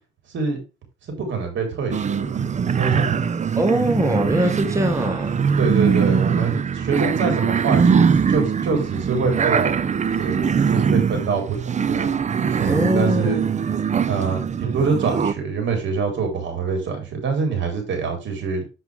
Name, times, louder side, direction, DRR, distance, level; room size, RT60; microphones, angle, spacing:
voice 1, 1.2-3.2 5.6-9.8 10.2-12.1 12.5-13.4 14.0-18.6, right 5 dB, 70° right, 4 dB, 4.4 m, -25 dB
sound 1, 1.9-15.3, right 6 dB, 35° right, 0.7 m, -22 dB
voice 2, 3.5-5.6 12.7-13.4, right 1 dB, 15° right, 3 dB, 2.2 m, -22 dB
8.0 x 7.8 x 3.6 m, 0.30 s
cardioid pair, 90°, 20 cm